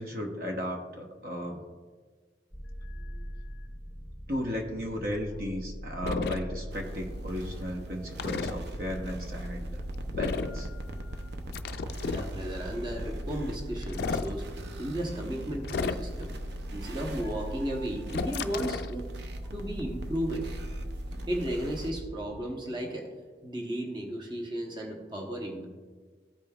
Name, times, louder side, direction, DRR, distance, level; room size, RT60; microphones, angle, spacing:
voice 1, 0.0-1.6 4.3-9.8 10.1-10.7, equal, 50° right, 1 dB, 0.9 m, -35 dB
sound 1, 2.5-22.4, equal, ahead, 1.2 m, -42 dB
sound 2, 6.0-6.4 8.2-8.5 10.1-10.6 11.5-12.3 13.8-14.3 15.6-16.2 18.1-18.9, left 4 dB, 60° left, 0.3 m, -32 dB
sound 3, 6.7-21.9, right 1 dB, 75° right, 0.6 m, -41 dB
voice 2, 12.0-14.4 14.8-16.3 16.7-19.1 19.5-20.5 21.3-23.1 23.4-25.7, equal, 25° right, 0 dB, 0.9 m, -34 dB
13.5 x 5.2 x 2.3 m, 1.5 s
head